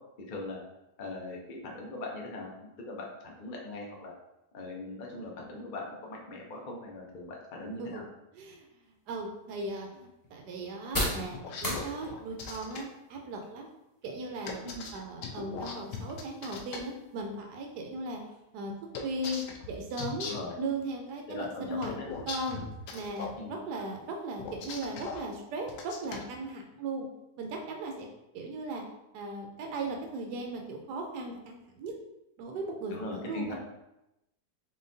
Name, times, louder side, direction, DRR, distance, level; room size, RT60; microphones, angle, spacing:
voice 1, 0.3-0.6 1.0-4.1 4.5-8.0 14.6-14.9 20.2-20.5 21.3-21.9 23.4-23.6 32.9-33.5, left 2 dB, 65° left, -1 dB, 0.5 m, -40 dB
voice 2, 8.3-8.6 9.1-13.7 14.0-14.6 14.9-18.2 18.5-18.7 19.0-20.3 20.6-22.6 22.9-27.1 27.4-28.1 28.3-28.8 29.1-31.9 32.4-33.5, right 2 dB, 80° right, 2 dB, 1.2 m, -37 dB
sound 1, 8.8-26.4, left 1 dB, 20° left, 0.6 m, -44 dB
sound 2, 11.3-12.8 14.5-16.8 18.9-20.5 21.8-23.4 24.4-25.2 25.7-26.2, left 5 dB, 85° left, 1.2 m, -39 dB
3.9 x 3.6 x 2.7 m, 0.91 s
omnidirectional pair, 1.8 m